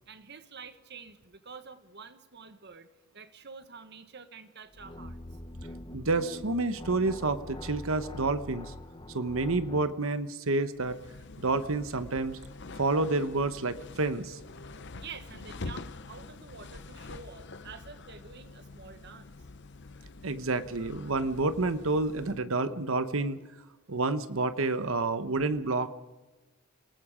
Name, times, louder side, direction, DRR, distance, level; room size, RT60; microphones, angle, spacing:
voice 1, 0.1-2.9 3.1-5.2 14.9-19.3, right 5 dB, 50° right, 10 dB, 1.4 m, -48 dB
sound 1, 4.7-10.0, left 1 dB, 20° left, 0.9 m, -44 dB
voice 2, 5.9-8.7 9.1-11.0 11.4-12.4 12.8-14.4 20.2-23.4 23.9-26.0, right 3 dB, 65° right, 11 dB, 1.0 m, -29 dB
sound 2, 10.7-22.5, left 3 dB, 50° left, 0.8 m, -46 dB
27.0 x 19.0 x 5.0 m, 1.1 s
head